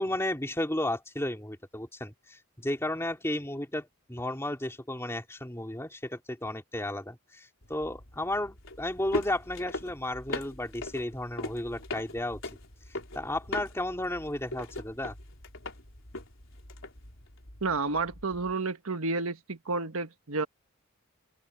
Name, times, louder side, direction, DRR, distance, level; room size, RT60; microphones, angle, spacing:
voice 1, 0.0-12.4 13.1-15.1, left 1 dB, 10° left, 2.8 m, -33 dB
sound 1, 7.6-18.5, left 2 dB, 65° left, 4.3 m, -41 dB
voice 2, 17.6-20.5, right 3 dB, 80° right, 1.5 m, -31 dB
head